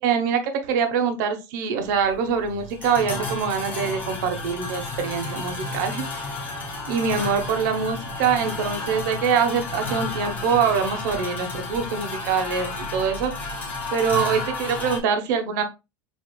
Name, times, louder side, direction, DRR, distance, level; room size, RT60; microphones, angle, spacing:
voice 1, 0.0-6.3 6.9-13.3 13.9-15.6, right 6 dB, 65° right, 6 dB, 1.1 m, -24 dB
sound 1, 1.8-15.0, left 3 dB, 15° left, 1.4 m, -32 dB
7.1 x 2.7 x 2.3 m, 0.25 s
supercardioid pair, 170°, 11 cm